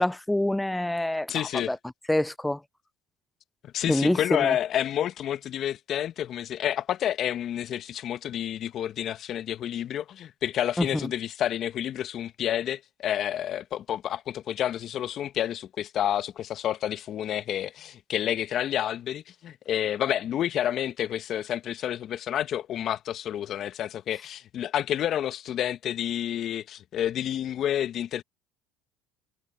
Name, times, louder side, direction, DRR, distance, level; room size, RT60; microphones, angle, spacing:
voice 1, 0.0-1.8 2.1-2.6 3.9-4.5 10.8-11.1, left 1 dB, 5° left, 0.5 m, -26 dB
voice 2, 1.3-1.7 3.6-28.2, left 11 dB, 55° left, 1.1 m, -29 dB
hypercardioid pair, 75°, 0 cm